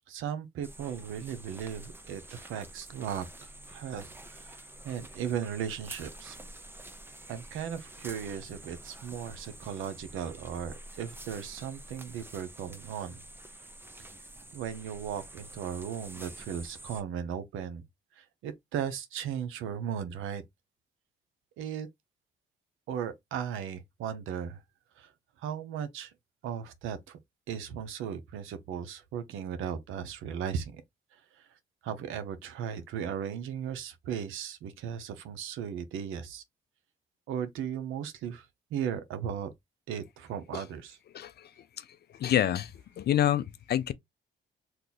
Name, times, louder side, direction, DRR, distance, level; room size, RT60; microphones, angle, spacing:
voice 1, 0.1-6.4 7.3-13.2 14.5-17.8 18.2-20.4 21.6-21.9 22.9-24.6 25.0-25.1 25.4-26.1 26.4-27.2 27.5-30.8 31.1-31.5 31.8-36.4 37.3-39.5 39.9-41.0, right 8 dB, 90° right, 0.7 m, -37 dB
sound 1, 0.6-17.0, right 1 dB, 10° right, 0.6 m, -48 dB
voice 2, 41.1-41.5 41.8-41.9 42.2-43.9, left 11 dB, 55° left, 0.4 m, -28 dB
2.8 x 2.5 x 3.8 m
cardioid pair, 90°, 20 cm